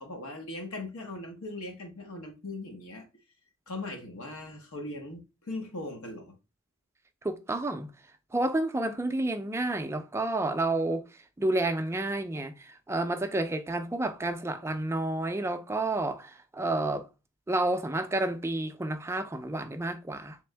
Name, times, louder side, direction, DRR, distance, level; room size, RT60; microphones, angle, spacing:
voice 1, 0.0-3.1 3.7-6.3, left 2 dB, 85° left, 1.1 m, -39 dB
voice 2, 7.2-7.9 8.3-11.0 11.4-17.1 17.5-20.4, right 2 dB, 10° right, 0.4 m, -30 dB
3.7 x 3.4 x 3.3 m
head